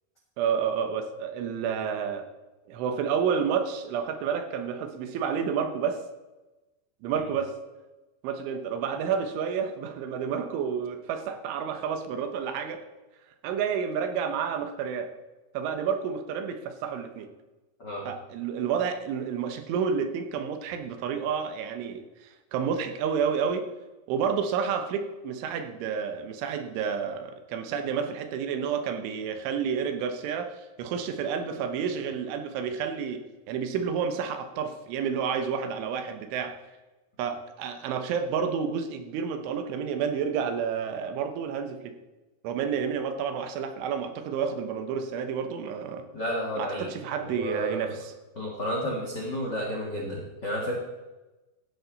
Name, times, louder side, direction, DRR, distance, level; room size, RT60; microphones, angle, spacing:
voice 1, 0.4-2.3 2.7-6.0 7.0-7.5 8.2-12.9 13.4-15.1 15.6-17.3 18.1-23.7 24.1-36.6 37.2-42.0 42.4-46.1 46.6-48.1, right 7 dB, 80° right, 7 dB, 3.4 m, -30 dB
voice 2, 46.1-46.9 47.2-47.9 48.3-50.8, equal, 70° left, -2 dB, 1.0 m, -31 dB
17.0 x 13.0 x 4.0 m, 1.1 s
omnidirectional pair, 5.7 m